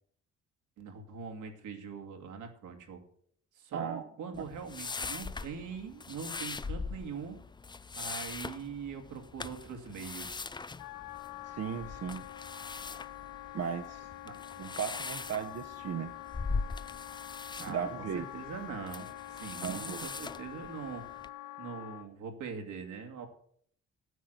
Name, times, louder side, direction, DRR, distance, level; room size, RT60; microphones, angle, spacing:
voice 1, 0.8-3.0 3.5-7.4 8.0-10.5 14.3-14.4 17.6-17.9 18.1-21.0 21.6-23.3, right 6 dB, 80° right, 4 dB, 2.3 m, -42 dB
voice 2, 3.7-4.0 11.5-12.2 13.5-14.1 14.6-16.1 17.6-18.2 19.6-20.1, right 7 dB, 55° right, 7 dB, 0.9 m, -36 dB
sound 1, 4.3-21.3, left 4 dB, 15° left, 0.4 m, -41 dB
Wind instrument woodwind instrument, 10.8-22.1, left 15 dB, 80° left, 0.7 m, -46 dB
9.3 x 8.7 x 7.9 m, 0.64 s
cardioid pair, 90°, 30 cm